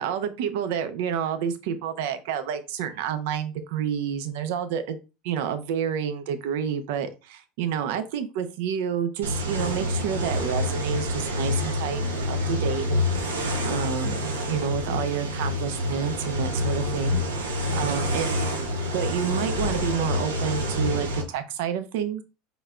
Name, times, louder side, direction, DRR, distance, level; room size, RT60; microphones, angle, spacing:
voice 1, 0.0-5.0 5.2-12.8 13.6-17.5 17.8-18.3 18.9-22.2, right 8 dB, 65° right, 10 dB, 0.8 m, -29 dB
sound 1, 9.2-21.2, left 1 dB, 85° right, 1.0 m, -27 dB
5.4 x 4.0 x 2.4 m, 0.29 s
hypercardioid pair, 80°, 0 cm